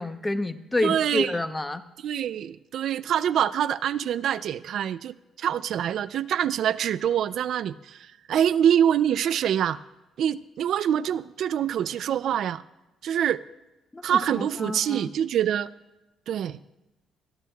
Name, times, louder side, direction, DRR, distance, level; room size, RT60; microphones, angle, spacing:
voice 1, 0.0-1.8 13.9-15.1, left 2 dB, 15° left, 9 dB, 0.8 m, -29 dB
voice 2, 0.8-1.3 2.0-9.8 10.2-12.6 13.0-13.4 14.0-15.7 16.3-16.6, right 9 dB, 70° right, 14 dB, 0.3 m, -25 dB
23.5 x 11.5 x 2.3 m, 1.0 s
cardioid pair, 90°, 0 cm